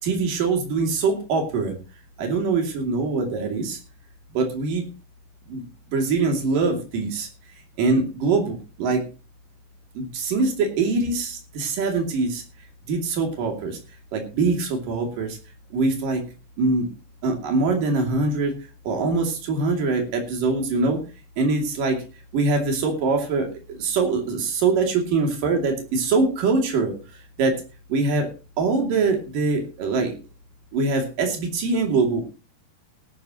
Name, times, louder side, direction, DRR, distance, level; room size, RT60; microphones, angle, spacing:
voice 1, 0.0-1.7 2.2-3.8 4.3-4.8 5.5-5.7 5.9-7.3 7.8-9.0 10.0-12.4 12.9-13.8 14.1-15.4 15.7-16.2 16.6-16.9 17.2-18.5 18.9-21.0 21.4-22.0 22.3-26.9 27.4-27.6 27.9-28.3 28.6-30.2 30.7-32.2, right 3 dB, 80° right, 2 dB, 4.3 m, -23 dB
18.0 x 13.0 x 3.0 m, 0.33 s
omnidirectional pair, 3.8 m